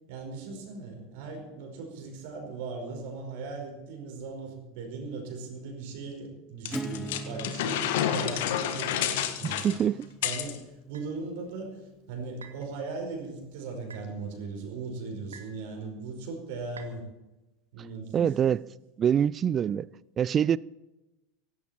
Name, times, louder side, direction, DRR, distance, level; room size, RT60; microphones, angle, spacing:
voice 1, 0.1-9.7 10.2-11.8 12.1-17.0 17.7-18.3, right 4 dB, 55° right, 5.1 m, -38 dB
sound 1, 6.7-10.6, left 10 dB, 60° left, 1.5 m, -30 dB
Acoustic guitar / Strum, 6.7-12.2, right 1 dB, 5° right, 1.0 m, -42 dB
voice 2, 9.4-10.1 18.1-18.6 19.0-19.9 20.2-20.6, right 8 dB, 30° right, 0.4 m, -25 dB
sound 2, 10.9-11.1 12.4-12.7 13.9-14.1 15.3-15.6 16.8-17.0, right 5 dB, 75° right, 1.6 m, -47 dB
17.0 x 16.5 x 4.4 m
figure-of-eight pair, 80°, 0 cm